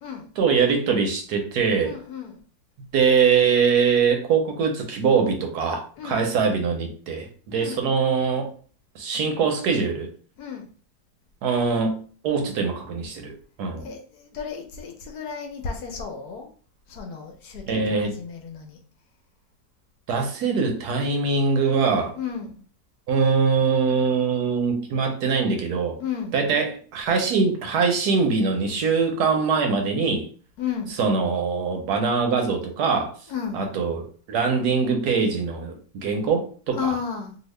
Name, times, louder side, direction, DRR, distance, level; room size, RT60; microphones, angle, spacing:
voice 1, 0.4-1.9 2.9-8.5 8.9-10.1 11.4-13.3 13.6-13.9 17.7-18.1 20.1-22.1 23.1-26.0 26.3-30.3 31.0-33.1 33.5-36.9, right 5 dB, 70° right, 3 dB, 1.2 m, -23 dB
voice 2, 1.8-2.4 6.0-6.3 7.5-7.9 10.4-10.7 13.8-16.5 16.9-18.8 22.1-22.6 26.0-26.4 30.6-30.9 33.3-33.7 36.7-37.4, left 7 dB, 70° left, 3 dB, 1.1 m, -33 dB
2.8 x 2.7 x 3.1 m, 0.41 s
omnidirectional pair, 1.9 m